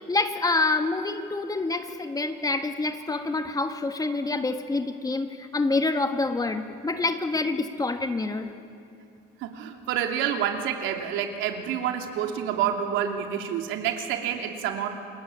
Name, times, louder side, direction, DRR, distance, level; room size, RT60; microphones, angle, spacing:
voice 1, 0.1-8.5, left 3 dB, 20° left, 7 dB, 1.7 m, -27 dB
voice 2, 9.4-15.0, right 9 dB, 75° right, 4 dB, 3.0 m, -28 dB
29.5 x 21.5 x 8.8 m, 2.5 s
cardioid pair, 110°, 20 cm